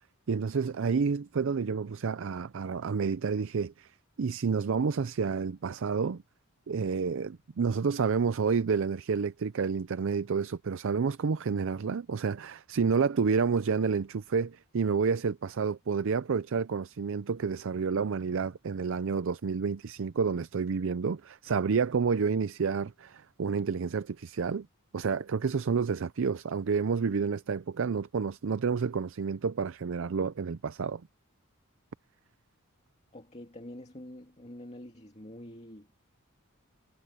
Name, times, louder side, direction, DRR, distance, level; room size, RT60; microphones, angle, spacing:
voice 1, 0.3-3.9 4.2-6.2 6.7-24.7 24.9-31.0, right 5 dB, 65° right, 0.5 m, -29 dB
voice 2, 33.1-35.9, left 1 dB, 30° left, 2.4 m, -46 dB
head